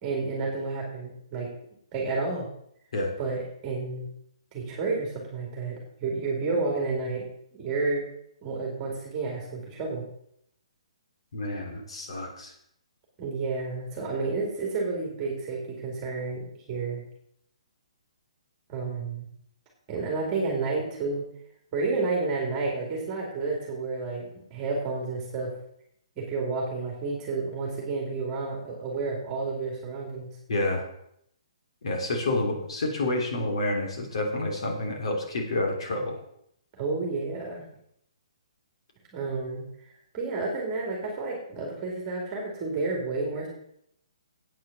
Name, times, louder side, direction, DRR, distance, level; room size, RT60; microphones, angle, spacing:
voice 1, 0.0-1.5 1.9-2.5 3.2-4.1 4.5-7.3 7.5-8.0 8.4-10.0 13.2-17.0 18.7-19.3 19.9-21.2 21.7-25.5 26.2-30.3 36.7-37.6 39.1-39.6 40.1-43.5, right 3 dB, 20° right, -1 dB, 2.5 m, -30 dB
voice 2, 11.3-12.5 30.5-30.8 31.8-36.2, left 2 dB, 60° left, 2 dB, 3.3 m, -29 dB
8.7 x 8.5 x 7.2 m, 0.73 s
hypercardioid pair, 170°, 3 cm